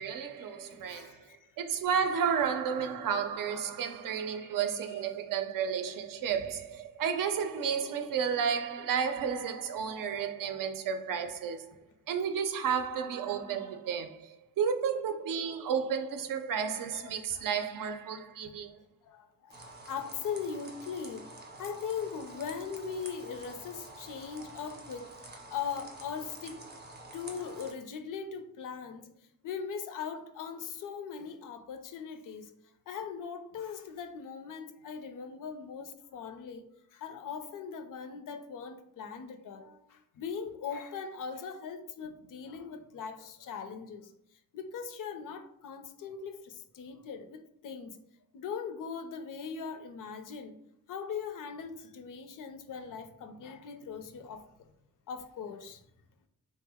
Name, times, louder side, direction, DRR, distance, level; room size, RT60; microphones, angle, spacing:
voice 1, 0.0-1.3 1.6-11.7 12.1-18.8, right 7 dB, 70° right, 0.5 m, -32 dB
voice 2, 0.7-1.5 4.3-4.5 16.5-17.4 18.1-18.2 19.0-19.6 19.8-21.3 21.6-26.6 27.1-29.1 29.4-32.5 32.9-44.1 44.5-48.0 48.3-50.6 50.9-54.7 55.1-55.8, left 6 dB, 65° left, 0.5 m, -40 dB
sound 1, 19.5-27.7, right 2 dB, 30° right, 0.6 m, -48 dB
3.5 x 2.1 x 3.4 m
wide cardioid pair, 130°, 34 cm